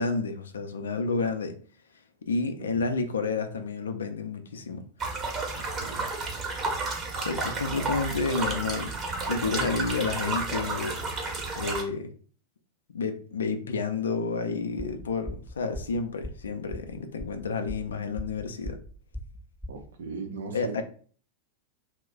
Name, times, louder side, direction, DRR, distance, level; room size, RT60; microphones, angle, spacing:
voice 1, 0.0-1.5 2.2-4.9 5.3-5.5 7.2-8.9 9.3-11.0 11.6-12.1 12.9-18.8 20.5-20.8, left 4 dB, 70° left, 0.4 m, -30 dB
sound 1, 5.0-11.8, right 3 dB, 25° right, 0.8 m, -31 dB
voice 2, 5.5-6.0 9.6-9.7 19.7-20.8, right 4 dB, 65° right, 0.5 m, -39 dB
sound 2, 14.8-19.9, left 1 dB, ahead, 0.4 m, -39 dB
2.3 x 2.1 x 3.6 m
figure-of-eight pair, 90°, 0 cm